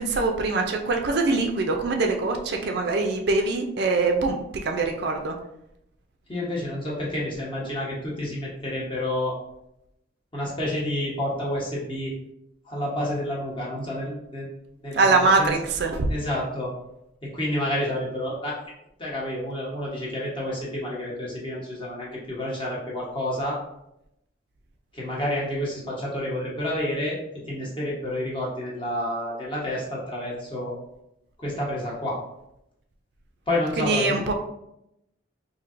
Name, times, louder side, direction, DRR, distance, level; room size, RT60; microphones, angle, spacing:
voice 1, 0.0-5.3 14.9-16.1 33.8-34.3, right 3 dB, 55° right, 3 dB, 0.4 m, -23 dB
voice 2, 6.3-9.3 10.3-12.1 12.6-14.5 14.8-15.5 16.1-16.7 17.2-18.6 19.0-23.6 24.9-27.2 27.5-30.7 31.4-32.2 33.5-34.2, left 1 dB, 25° left, -4 dB, 1.0 m, -29 dB
4.4 x 2.7 x 2.5 m, 0.83 s
head